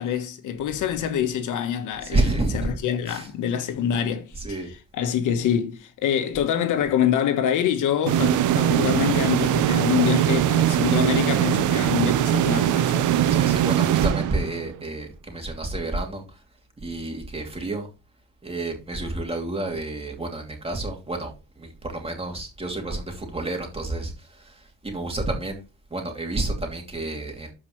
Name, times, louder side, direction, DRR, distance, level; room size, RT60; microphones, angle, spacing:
voice 1, 0.0-4.6 5.0-13.1, left 9 dB, 85° left, 1.3 m, -25 dB
voice 2, 2.0-2.7 3.1-3.3 4.3-4.7 13.3-16.4 16.8-17.9 18.4-25.6 25.9-27.5, right 2 dB, 20° right, 2.8 m, -29 dB
sound 1, 8.1-14.8, right 11 dB, 80° right, 0.8 m, -21 dB
12.5 x 4.9 x 3.2 m
cardioid pair, 90°, 30 cm